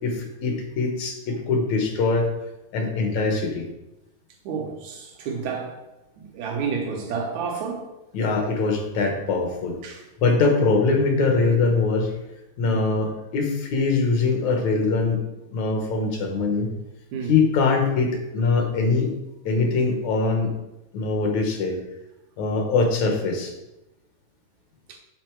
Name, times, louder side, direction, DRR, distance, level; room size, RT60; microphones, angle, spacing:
voice 1, 0.0-2.3 2.7-3.7 8.1-9.8 10.2-12.1 12.6-15.2 15.5-16.7 17.3-19.1 19.5-20.5 20.9-21.8 22.4-23.5, left 4 dB, 75° left, 2.4 m, -22 dB
voice 2, 4.4-5.8 6.2-7.9 9.8-10.0 12.6-12.8 17.1-17.3 24.9-25.0, right 5 dB, 80° right, 2.4 m, -30 dB
8.4 x 3.9 x 4.5 m
omnidirectional pair, 3.3 m